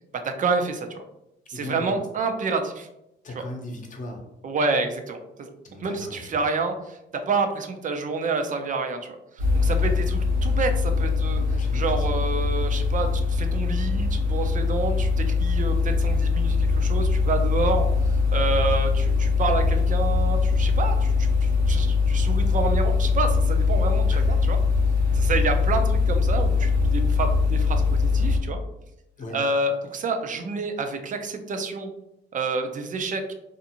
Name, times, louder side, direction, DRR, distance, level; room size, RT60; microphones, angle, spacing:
voice 1, 0.2-0.9 1.5-2.9 4.4-5.2 5.8-7.0 7.3-11.4 11.7-17.9 18.3-24.6 25.1-28.6 29.3-31.9 32.3-33.3, right 3 dB, 40° right, 6 dB, 0.5 m, -28 dB
voice 2, 1.5-2.0 3.2-4.2 5.6-6.4 9.6-10.1 11.5-12.2 18.4-18.6 24.1-24.3 25.0-25.3 29.2-29.4, left 1 dB, 40° left, 1 dB, 0.7 m, -39 dB
sound 1, 9.4-28.4, left 4 dB, 90° right, 1.0 m, -22 dB
2.5 x 2.5 x 2.8 m, 0.85 s
cardioid pair, 90°, 20 cm